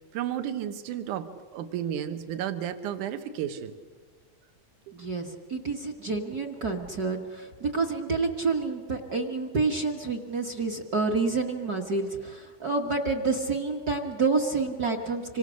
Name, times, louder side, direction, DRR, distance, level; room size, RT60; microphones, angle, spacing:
voice 1, 0.1-3.7 6.3-6.4 9.5-9.6, right 10 dB, 75° right, 9 dB, 2.7 m, -33 dB
voice 2, 4.9-15.4, right 4 dB, 40° right, 5 dB, 1.4 m, -28 dB
26.5 x 25.5 x 6.4 m, 1.5 s
omnidirectional pair, 3.7 m